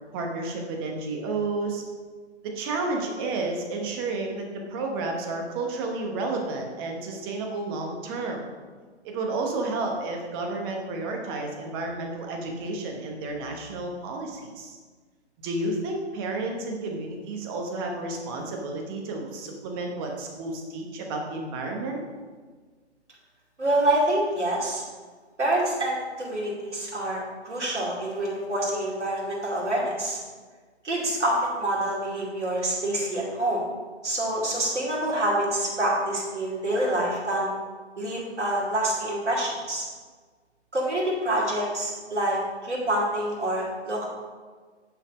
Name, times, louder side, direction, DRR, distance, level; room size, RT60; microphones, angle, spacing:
voice 1, 0.1-1.8 2.4-8.5 9.0-14.8 15.4-22.0, right 2 dB, 20° right, 2 dB, 1.0 m, -31 dB
voice 2, 23.6-24.8 25.4-30.2 30.8-33.6 34.0-37.5 38.0-39.8 40.7-44.1, right 1 dB, 75° right, -5 dB, 2.6 m, -26 dB
9.8 x 4.2 x 5.0 m, 1.5 s
figure-of-eight pair, 140°, 35 cm